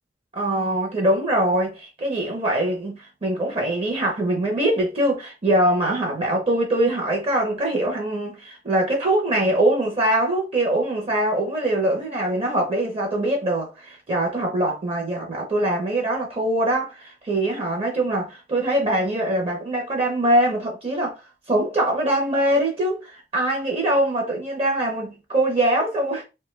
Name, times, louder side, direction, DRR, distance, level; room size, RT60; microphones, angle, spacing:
voice 1, 0.3-21.2 21.5-26.2, right 1 dB, 35° right, 0.7 m, -23 dB
2.7 x 2.2 x 3.1 m
head